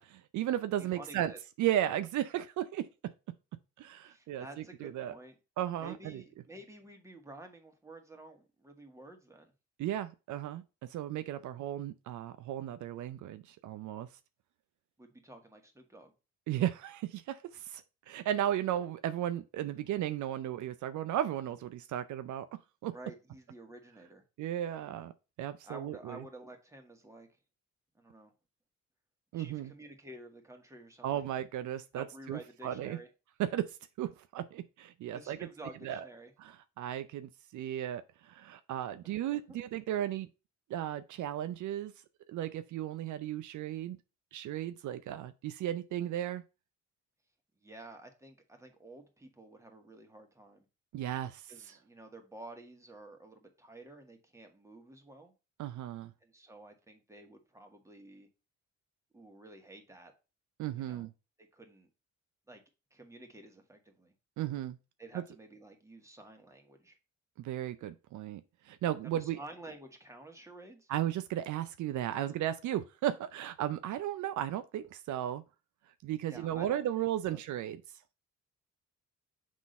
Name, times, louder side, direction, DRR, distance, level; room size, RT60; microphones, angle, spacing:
voice 1, 0.0-1.3 1.6-3.1 3.8-4.5 4.8-5.1 5.6-6.2 9.8-10.6 10.9-14.1 16.5-22.5 22.8-22.9 24.4-25.1 25.4-26.2 29.3-29.7 31.0-33.0 33.4-35.5 35.8-36.1 36.4-40.3 40.7-41.9 42.3-44.0 44.3-46.4 50.9-51.7 55.6-56.1 60.6-61.1 64.4-64.8 65.1-65.2 67.4-69.4 70.9-75.4 76.0-77.8, right 12 dB, 75° right, 0.6 m, -35 dB
voice 2, 1.0-1.4 4.1-5.3 5.8-9.5 15.0-16.1 19.6-19.7 22.9-24.2 25.6-27.3 28.0-28.3 29.3-31.3 31.9-33.1 35.1-36.3 39.3-39.6 47.6-50.7 51.5-55.3 56.2-58.3 59.1-60.1 60.7-61.1 61.4-61.9 62.5-62.6 62.9-64.1 65.0-67.0 69.1-70.9 76.3-76.8 77.3-77.4, right 1 dB, 10° right, 1.8 m, -51 dB
6.1 x 3.8 x 5.3 m
cardioid pair, 90°, 30 cm